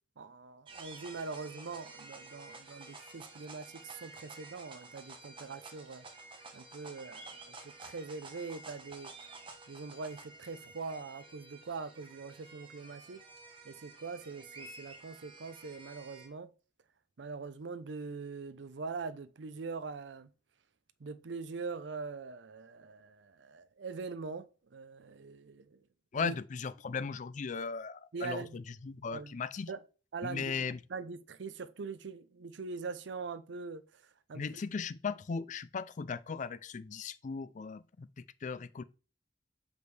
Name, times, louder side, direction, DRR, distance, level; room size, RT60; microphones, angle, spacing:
voice 1, 0.2-6.0 6.5-9.1 9.7-13.2 13.6-16.5 17.2-20.3 21.0-25.8 26.1-26.4 28.1-28.6 29.1-29.3 29.7-29.8 30.1-33.8 34.3-34.4, right 4 dB, 70° right, 0.5 m, -43 dB
sound 1, 0.7-16.3, right 3 dB, 30° right, 1.1 m, -51 dB
voice 2, 26.1-29.7 30.2-30.8 34.3-38.8, left 5 dB, 40° left, 0.4 m, -37 dB
6.1 x 5.2 x 3.3 m
head